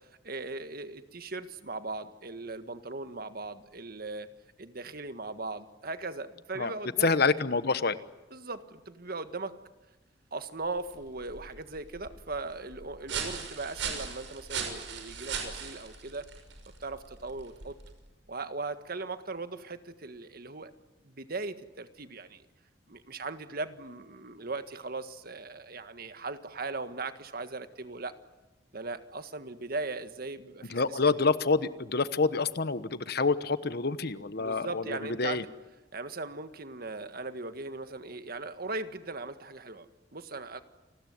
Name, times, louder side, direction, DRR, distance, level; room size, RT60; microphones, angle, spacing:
voice 1, 0.0-4.3 4.6-7.1 8.3-9.5 10.3-16.3 16.8-17.8 18.3-20.7 21.0-22.4 22.9-28.1 28.7-31.0 34.4-35.5 35.9-40.6, right 3 dB, 55° right, 10 dB, 1.7 m, -39 dB
voice 2, 7.0-8.0 30.7-35.4, left 4 dB, 60° left, 13 dB, 1.2 m, -27 dB
sound 1, 10.6-18.1, right 6 dB, 90° right, 6.3 m, -39 dB
29.5 x 20.0 x 9.5 m, 1.1 s
head